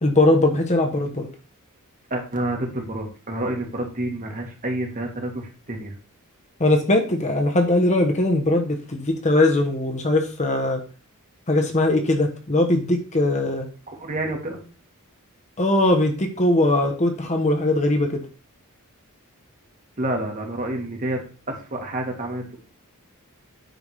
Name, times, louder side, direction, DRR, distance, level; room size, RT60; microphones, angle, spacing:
voice 1, 0.0-1.3 6.6-10.8 11.5-13.7 15.6-18.2, left 1 dB, 30° left, 3 dB, 1.2 m, -20 dB
voice 2, 2.1-5.9 13.9-14.6 20.0-21.2 21.5-22.6, right 1 dB, 40° right, 2 dB, 1.8 m, -28 dB
9.1 x 3.7 x 4.8 m, 0.35 s
head